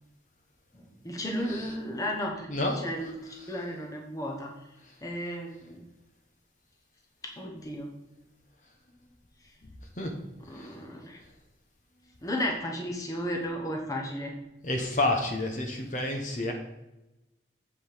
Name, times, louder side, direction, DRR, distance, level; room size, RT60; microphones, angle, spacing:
voice 1, 1.0-2.5 2.8-3.2 3.5-4.5 5.0-5.8 7.2-7.9 10.5-11.2 12.2-14.3, equal, 20° left, 0 dB, 1.1 m, -33 dB
voice 2, 2.5-2.8 10.0-10.1 14.6-16.5, left 2 dB, 45° left, 2 dB, 1.1 m, -29 dB
7.7 x 5.1 x 5.0 m, 0.95 s
head